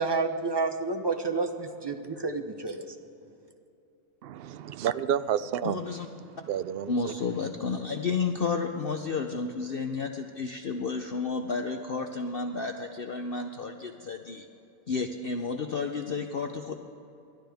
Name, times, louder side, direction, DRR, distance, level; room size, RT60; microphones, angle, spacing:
voice 1, 0.0-2.9, right 4 dB, 20° right, 5 dB, 0.8 m, -29 dB
voice 2, 4.2-5.8 6.5-7.1, right 9 dB, 75° right, 13 dB, 0.5 m, -30 dB
voice 3, 5.6-6.1 6.9-14.5 14.9-16.7, left 4 dB, 50° left, 4 dB, 0.8 m, -31 dB
29.0 x 12.5 x 3.5 m, 2.8 s
omnidirectional pair, 1.5 m